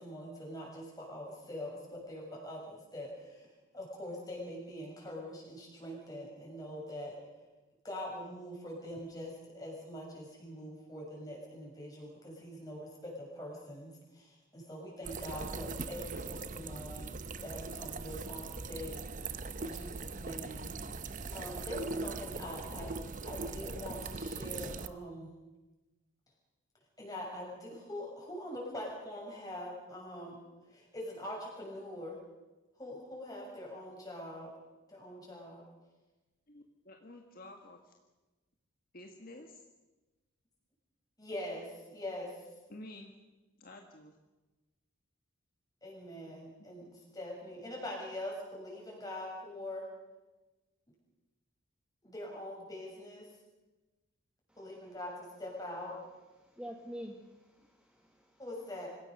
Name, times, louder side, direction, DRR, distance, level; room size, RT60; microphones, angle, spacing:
voice 1, 0.0-3.5 3.7-7.2 7.8-17.2 17.4-19.0 19.6-20.7 21.3-22.9 23.2-25.3 27.0-30.4 30.7-32.2 32.8-34.5 34.9-35.6 41.2-42.3 45.8-46.8 47.1-49.8 52.0-53.3 54.6-55.1 55.4-56.0 58.4-58.9, left 1 dB, 15° left, -2 dB, 7.0 m, -43 dB
sound 1, 15.0-24.9, right 3 dB, 35° right, 0.8 m, -40 dB
voice 2, 22.3-23.1 36.5-37.9 38.9-39.6 42.7-43.1 43.6-44.2 46.8-47.0, left 1 dB, 45° left, 3 dB, 1.6 m, -51 dB
voice 3, 56.4-58.4, equal, 5° right, 2 dB, 1.4 m, -47 dB
26.0 x 16.5 x 6.7 m, 1.1 s
head